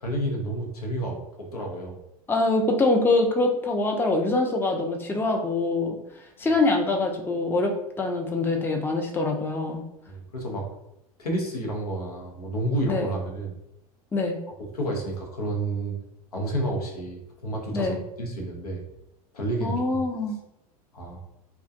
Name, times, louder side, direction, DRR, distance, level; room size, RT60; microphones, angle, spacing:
voice 1, 0.0-2.0 10.1-10.7 11.2-13.5 14.7-16.0 16.3-18.8 19.3-20.0 20.9-21.2, right 1 dB, 90° left, 0 dB, 0.6 m, -30 dB
voice 2, 2.3-6.0 6.4-9.8 12.9-13.1 14.1-14.4 17.7-18.0 19.6-20.4, left 2 dB, 10° left, 3 dB, 0.4 m, -24 dB
2.3 x 2.1 x 2.6 m, 0.84 s
hypercardioid pair, 85°, 19 cm